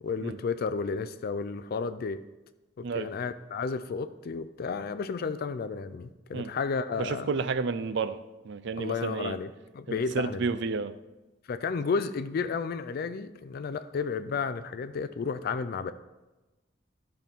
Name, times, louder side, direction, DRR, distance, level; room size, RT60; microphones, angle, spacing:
voice 1, 0.0-2.2 2.8-7.3 8.8-10.5 11.5-15.9, left 5 dB, 50° left, 12 dB, 0.4 m, -32 dB
voice 2, 7.0-8.2 8.4-9.4 9.9-10.9, right 4 dB, 65° right, 13 dB, 0.5 m, -31 dB
12.5 x 5.8 x 3.5 m, 1.1 s
head